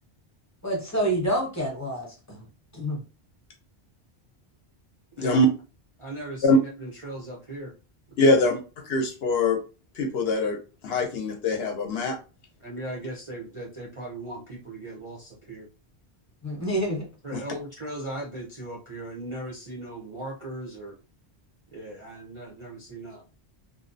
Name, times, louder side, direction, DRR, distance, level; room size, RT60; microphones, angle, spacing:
voice 1, 0.6-2.4 2.7-3.0 16.4-17.0, right 1 dB, 15° left, -2 dB, 0.8 m, -28 dB
voice 2, 6.0-7.7 8.1-8.4 12.6-15.7 17.2-21.0 21.7-23.2, right 1 dB, 40° right, -4 dB, 0.5 m, -38 dB
voice 3, 8.2-8.6 8.9-9.6 10.0-10.6 10.8-12.2 17.3-17.4, left 1 dB, 70° left, 3 dB, 0.8 m, -22 dB
2.5 x 2.0 x 2.5 m, 0.32 s
omnidirectional pair, 1.1 m